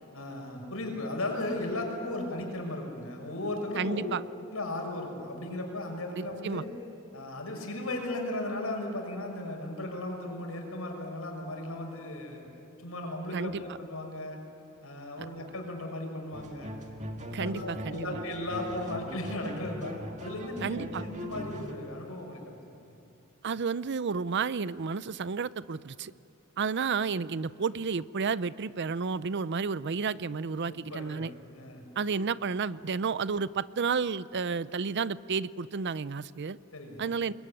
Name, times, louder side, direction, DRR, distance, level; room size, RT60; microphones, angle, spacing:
voice 1, 0.1-4.0 4.5-6.7 7.1-12.4 12.8-14.4 14.8-16.7 17.4-22.6 30.7-31.2 31.5-31.8 36.7-37.1, left 1 dB, 85° left, 2 dB, 6.3 m, -36 dB
voice 2, 3.8-4.2 6.2-6.6 13.3-13.6 17.3-18.2 20.6-21.0 23.4-26.1 26.6-31.3 32.0-36.6 37.0-37.3, right 5 dB, 55° right, 17 dB, 0.6 m, -31 dB
sound 1, 16.3-21.7, equal, 35° right, 2.1 m, -40 dB
27.5 x 22.0 x 10.0 m, 2.8 s
head